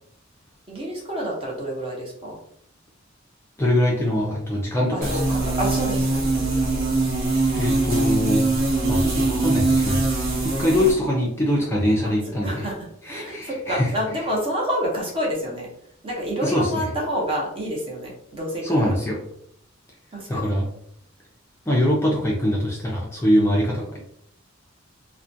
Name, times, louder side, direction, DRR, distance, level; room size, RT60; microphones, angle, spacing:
voice 1, 0.7-2.4 4.9-6.9 12.0-12.1 12.4-15.7 16.0-18.9 20.1-20.5 23.7-23.8, equal, 25° right, -3 dB, 0.7 m, -28 dB
voice 2, 3.6-5.4 7.5-8.5 8.9-12.7 13.0-13.9 16.4-16.9 18.6-19.2 20.3-20.7 21.7-24.0, left 1 dB, 15° left, -4 dB, 0.4 m, -23 dB
sound 1, 5.0-10.9, right 2 dB, 75° right, 0.8 m, -22 dB
2.4 x 2.1 x 2.6 m, 0.70 s
head